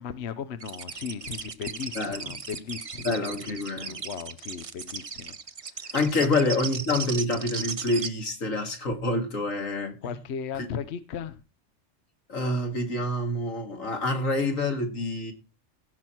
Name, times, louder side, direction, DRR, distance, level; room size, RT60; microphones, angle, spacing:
voice 1, 0.0-6.3 10.0-11.4, left 7 dB, 60° left, 1.0 m, -37 dB
sound 1, 0.6-8.1, right 5 dB, 35° right, 0.6 m, -36 dB
voice 2, 3.0-4.0 5.9-10.0 12.3-15.3, left 2 dB, 85° left, 2.6 m, -27 dB
16.5 x 6.2 x 4.5 m
omnidirectional pair, 1.3 m